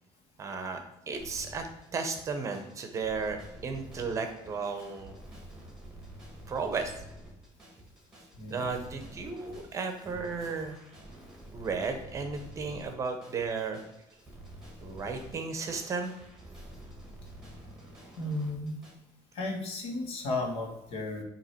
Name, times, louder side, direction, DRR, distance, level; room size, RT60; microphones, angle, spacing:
voice 1, 0.4-0.8 1.1-1.7 1.9-5.1 6.5-6.9 8.5-10.8 11.5-13.8 14.8-16.1, right 4 dB, 30° right, 5 dB, 0.8 m, -34 dB
sound 1, 1.1-18.9, right 1 dB, 5° right, 1.6 m, -49 dB
voice 2, 18.2-18.7 19.3-21.2, left 2 dB, 80° left, 1 dB, 1.5 m, -34 dB
7.9 x 3.0 x 4.4 m, 0.90 s
cardioid pair, 160°, 10 cm